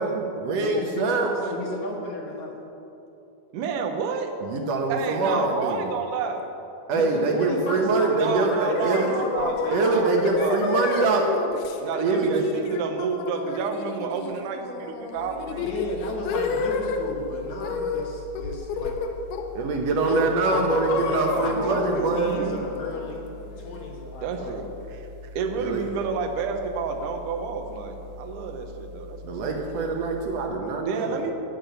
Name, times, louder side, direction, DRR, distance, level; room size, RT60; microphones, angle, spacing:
voice 1, 0.0-1.6 4.4-5.9 6.9-9.1 9.7-11.3 12.0-12.5 19.5-22.4 25.6-25.8 29.2-31.3, right 3 dB, 90° right, 2 dB, 1.4 m, -24 dB
voice 2, 0.6-1.2 1.5-2.6 5.1-5.6 6.9-9.9 15.6-19.0 19.9-20.2 20.5-23.3 23.6-24.6, left 2 dB, 60° left, -1 dB, 2.2 m, -34 dB
voice 3, 3.5-4.3 4.9-6.5 8.2-10.6 11.1-11.2 11.8-15.7 21.3-22.6 24.2-24.6 25.0-29.6 30.9-31.3, right 5 dB, 70° right, 4 dB, 2.2 m, -30 dB
sound 1, 8.6-17.1 17.6-18.1 18.4-19.6 20.1-23.8, left 4 dB, 90° left, 2.9 m, -30 dB
sound 2, 15.1-30.5, left 2 dB, 45° right, 2.0 m, -43 dB
14.0 x 5.7 x 9.1 m, 3.0 s
omnidirectional pair, 4.4 m